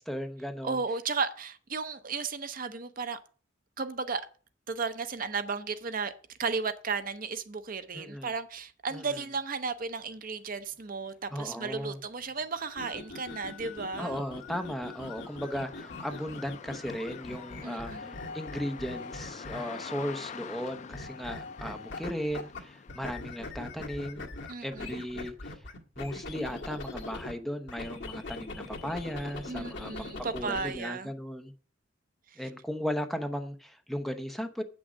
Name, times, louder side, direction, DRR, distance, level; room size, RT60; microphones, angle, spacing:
voice 1, 0.0-0.8 7.9-8.3 8.9-9.3 11.3-12.0 14.0-24.3 24.6-25.7 26.0-30.0 30.3-31.5 32.4-34.6, equal, ahead, 0.8 m, -36 dB
voice 2, 0.6-3.2 3.8-4.2 4.7-6.1 6.4-14.2 17.6-18.1 24.5-25.0 29.5-31.1, right 4 dB, 45° right, 0.7 m, -34 dB
sound 1, 10.7-10.8 11.3-24.2, left 6 dB, 40° left, 0.4 m, -47 dB
sound 2, 12.7-19.9 20.9-22.6 22.9-27.3 27.7-30.8, left 2 dB, 65° left, 1.6 m, -42 dB
8.4 x 6.2 x 6.2 m
head